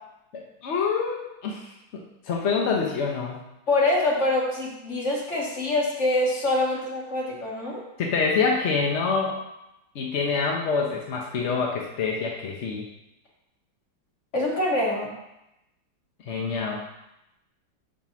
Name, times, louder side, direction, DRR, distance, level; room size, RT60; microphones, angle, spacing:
voice 1, 0.3-3.4 8.0-9.4 9.9-12.9 16.3-16.8, left 5 dB, 60° left, 0 dB, 0.7 m, -26 dB
voice 2, 3.7-7.8 14.3-15.1, left 2 dB, 40° left, -3 dB, 1.8 m, -25 dB
5.3 x 4.9 x 6.0 m, 0.89 s
omnidirectional pair, 2.1 m